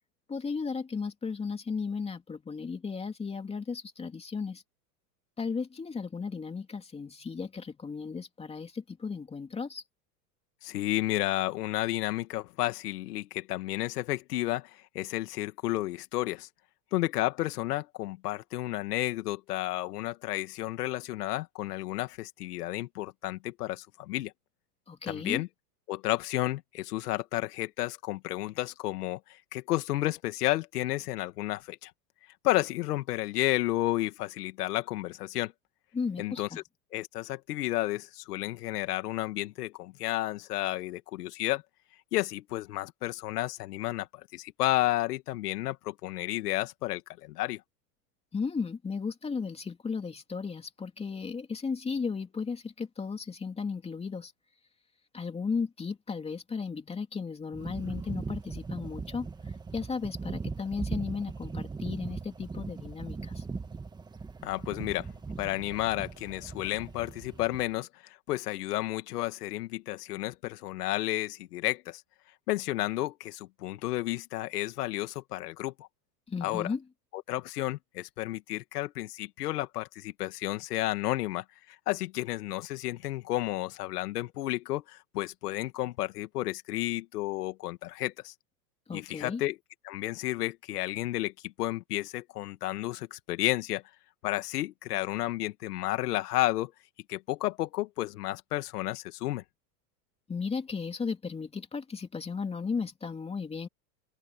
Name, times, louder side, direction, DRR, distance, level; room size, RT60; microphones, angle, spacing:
voice 1, 0.3-4.6 5.4-9.8 24.9-25.4 35.9-36.6 48.3-54.3 55.1-63.4 76.3-76.8 88.9-89.4 100.3-103.7, left 5 dB, 10° left, 2.9 m, -35 dB
voice 2, 10.6-16.5 16.9-24.3 25.1-25.5 25.9-31.9 32.4-35.5 36.2-36.5 36.9-41.6 42.1-44.1 44.3-47.6 64.4-65.1 65.4-72.0 72.5-75.9 76.4-76.7 77.3-81.4 81.9-88.3 88.9-89.6 89.8-93.8 94.2-96.7 97.1-99.4, left 16 dB, 70° left, 2.3 m, -32 dB
sound 1, 57.5-67.7, right 4 dB, 10° right, 1.7 m, -39 dB
supercardioid pair, 145°, 48 cm